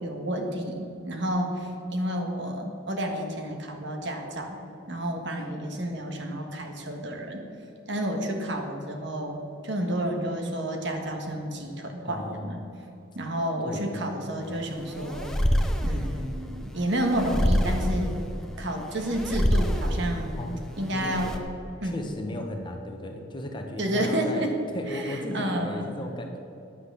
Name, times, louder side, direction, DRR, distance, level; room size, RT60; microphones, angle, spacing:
voice 1, 0.0-4.6 4.9-7.5 7.9-12.6 13.1-15.5 15.8-18.2 18.6-20.3 20.8-21.4 21.8-22.1 23.8-24.6 24.9-25.9, right 1 dB, 60° right, 3 dB, 1.6 m, -30 dB
voice 2, 12.0-12.7 13.6-14.1 20.4-20.5 20.9-21.2 21.8-26.4, left 1 dB, 25° left, 3 dB, 1.1 m, -35 dB
sound 1, 14.4-21.4, equal, 5° left, 0.8 m, -27 dB
10.0 x 8.3 x 6.9 m, 2.9 s
head